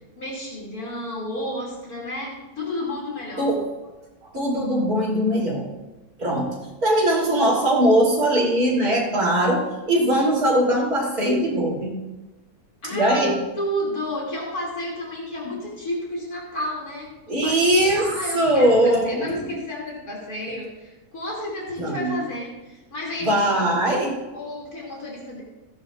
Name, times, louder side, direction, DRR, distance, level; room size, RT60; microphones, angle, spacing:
voice 1, 0.2-3.5 12.8-23.8 24.3-25.4, left 1 dB, 70° left, -4 dB, 3.3 m, -31 dB
voice 2, 4.3-5.6 6.2-6.5 6.8-9.6 9.9-12.0 12.9-13.3 17.3-18.0 18.3-19.5 21.8-22.1 23.2-24.2, right 1 dB, 70° right, -3 dB, 3.7 m, -20 dB
16.5 x 10.5 x 2.5 m, 1.1 s
omnidirectional pair, 1.6 m